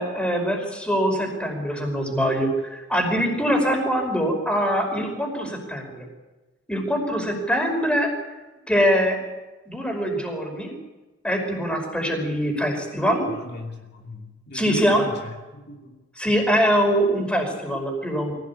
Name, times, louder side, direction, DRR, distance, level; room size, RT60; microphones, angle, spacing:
voice 1, 0.0-6.1 6.7-8.1 8.7-9.2 9.7-10.7 11.2-13.2 14.5-15.1 16.2-18.3, equal, 5° left, 3 dB, 5.4 m, -23 dB
voice 2, 13.3-16.0, left 1 dB, 55° left, 0 dB, 2.9 m, -38 dB
24.5 x 17.5 x 8.5 m, 1.1 s
head